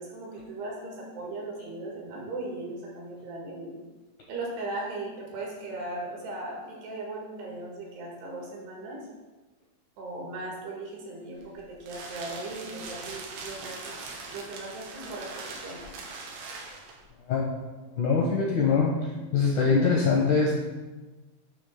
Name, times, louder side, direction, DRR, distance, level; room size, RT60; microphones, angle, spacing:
voice 1, 0.0-3.7 4.3-9.0 10.0-15.3 15.6-15.8, right 2 dB, 75° right, -2 dB, 3.7 m, -38 dB
sound 1, 11.4-17.1, right 3 dB, 90° right, 3.4 m, -41 dB
voice 2, 18.0-18.9 19.3-20.5, left 5 dB, 75° left, -2 dB, 1.8 m, -23 dB
9.0 x 3.4 x 6.7 m, 1.2 s
omnidirectional pair, 4.9 m